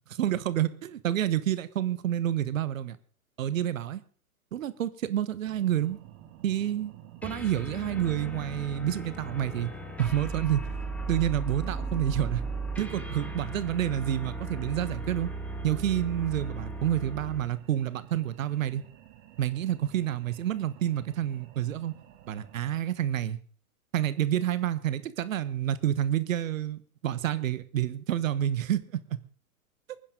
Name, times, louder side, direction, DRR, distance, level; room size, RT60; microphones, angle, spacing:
voice 1, 0.1-3.0 3.4-4.0 4.5-6.0 6.4-6.9 7.2-9.7 10.0-10.6 11.1-12.4 12.8-15.3 15.6-18.8 19.4-22.0 22.3-23.4 23.9-29.2 29.9-30.0, right 11 dB, 65° right, 15 dB, 1.3 m, -29 dB
sound 1, 5.4-22.8, right 11 dB, 40° right, 2.2 m, -52 dB
sound 2, 7.2-17.5, right 3 dB, 5° left, 1.7 m, -36 dB
23.5 x 10.0 x 3.9 m, 0.43 s
figure-of-eight pair, 110°, 44 cm